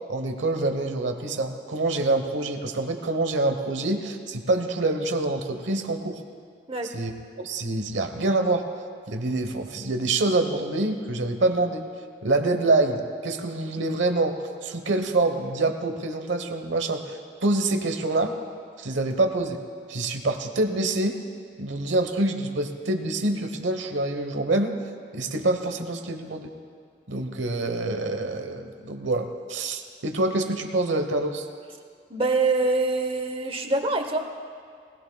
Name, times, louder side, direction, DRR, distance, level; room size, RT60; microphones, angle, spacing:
voice 1, 0.1-6.2 6.8-8.6 9.1-11.8 12.2-18.3 18.8-19.6 19.9-21.2 21.6-24.8 25.1-26.5 27.1-31.5, right 2 dB, 80° right, 6 dB, 1.1 m, -26 dB
voice 2, 32.1-34.2, right 3 dB, 30° right, 6 dB, 0.9 m, -24 dB
19.5 x 18.5 x 2.3 m, 2.2 s
head